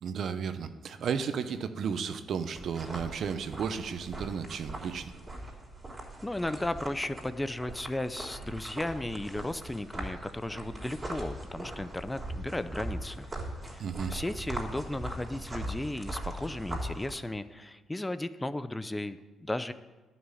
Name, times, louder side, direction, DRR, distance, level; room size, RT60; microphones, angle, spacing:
voice 1, 0.0-5.1 13.8-14.1, right 6 dB, 60° right, 10 dB, 0.8 m, -33 dB
sound 1, 2.6-17.2, right 1 dB, 20° right, 3.6 m, -40 dB
voice 2, 6.2-13.3 13.6-19.7, left 1 dB, 10° left, 12 dB, 0.6 m, -35 dB
11.5 x 6.2 x 9.1 m, 1.2 s
cardioid pair, 90°, 0 cm